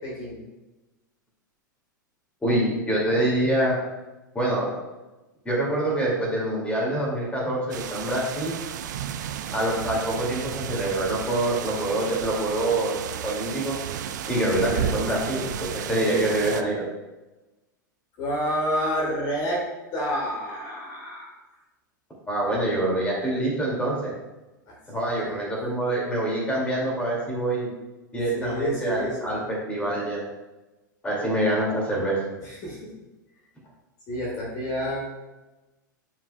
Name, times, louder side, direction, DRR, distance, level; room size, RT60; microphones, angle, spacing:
voice 1, 0.0-0.4 18.2-19.6 19.9-21.3 22.4-22.6 24.7-25.4 28.1-29.3 32.4-32.8 34.1-35.1, equal, 35° left, -3 dB, 1.9 m, -29 dB
voice 2, 2.4-3.8 4.3-4.7 5.4-8.5 9.5-12.9 13.2-13.7 14.3-16.8 22.3-24.1 24.9-27.7 28.1-30.2 31.0-32.2, right 1 dB, 10° left, -3 dB, 2.4 m, -25 dB
sound 1, 7.7-16.6, right 9 dB, 60° right, 0.5 m, -33 dB
11.0 x 4.7 x 2.3 m, 1.1 s
figure-of-eight pair, 95°, 11 cm